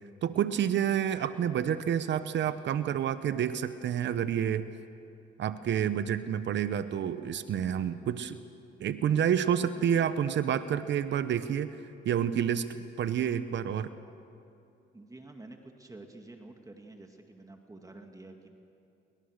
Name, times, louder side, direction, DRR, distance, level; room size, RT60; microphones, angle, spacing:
voice 1, 0.2-4.7 5.4-8.4 8.8-11.8 12.0-12.7 13.0-13.9, right 9 dB, 65° right, 12 dB, 0.9 m, -29 dB
voice 2, 14.9-18.5, right 2 dB, 15° right, 4 dB, 2.1 m, -49 dB
29.0 x 23.5 x 6.6 m, 2.7 s
cardioid pair, 90°, 20 cm